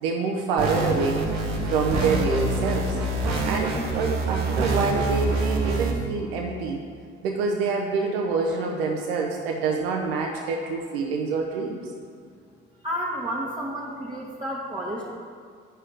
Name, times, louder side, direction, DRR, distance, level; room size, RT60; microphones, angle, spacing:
voice 1, 0.0-1.3 1.6-3.0 3.4-6.8 7.2-11.9, right 4 dB, 85° right, 1 dB, 0.5 m, -26 dB
sound 1, 0.6-5.9, right 2 dB, 70° right, 0.9 m, -26 dB
voice 2, 12.8-15.1, equal, 15° right, -6 dB, 1.2 m, -31 dB
8.4 x 5.5 x 3.2 m, 2.1 s
hypercardioid pair, 45°, 29 cm